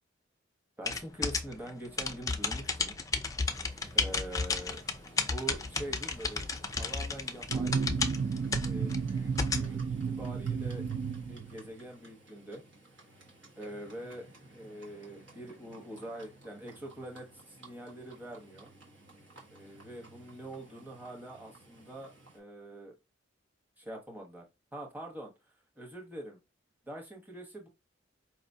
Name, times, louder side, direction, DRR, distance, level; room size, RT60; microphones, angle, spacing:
voice 1, 0.8-3.0 3.9-4.8 5.2-6.5 6.8-7.8 8.6-10.8 11.2-12.6 13.6-18.7 19.5-22.9 23.8-24.4 24.7-25.3 25.8-26.4 26.8-27.7, right 1 dB, 10° right, 0 dB, 1.1 m, -44 dB
sound 1, 0.9-9.7, left 4 dB, 20° left, 0.4 m, -33 dB
Livestock farm animals working animals, 3.4-22.4, right 2 dB, 70° right, 1.4 m, -56 dB
sound 2, 7.5-11.8, right 5 dB, 55° right, 0.4 m, -33 dB
5.0 x 2.9 x 2.7 m, 0.23 s
head